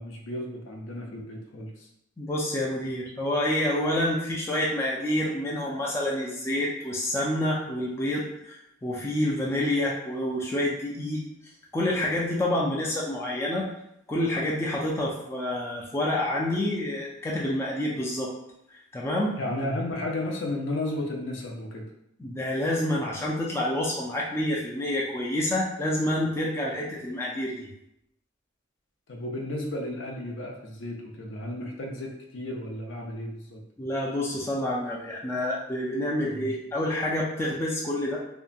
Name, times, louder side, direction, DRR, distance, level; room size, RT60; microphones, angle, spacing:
voice 1, 0.0-1.9 19.4-21.8 29.1-33.6 36.3-36.5, left 1 dB, 65° left, 0 dB, 0.5 m, -33 dB
voice 2, 2.2-11.2 11.7-13.7 14.1-18.3 18.9-19.3 22.2-27.7 33.8-38.2, left 1 dB, 15° left, -4 dB, 0.3 m, -28 dB
2.7 x 2.2 x 2.5 m, 0.80 s
head